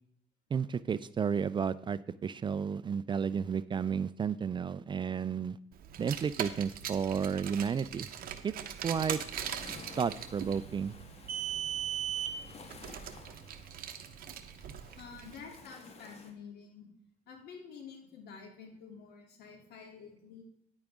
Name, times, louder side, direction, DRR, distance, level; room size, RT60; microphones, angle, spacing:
voice 1, 0.5-5.6 6.0-8.1 8.4-8.5 8.8-9.2 10.0-10.9, right 6 dB, 30° right, 17 dB, 0.3 m, -32 dB
Car, 5.9-15.4, right 10 dB, 60° right, 1.0 m, -39 dB
sound 1, 9.0-16.3, left 4 dB, 40° left, 1.5 m, -53 dB
voice 2, 15.0-16.9 17.3-20.4, left 5 dB, 75° left, 1 dB, 3.1 m, -49 dB
10.0 x 8.8 x 3.6 m, 0.73 s
cardioid pair, 110°, 17 cm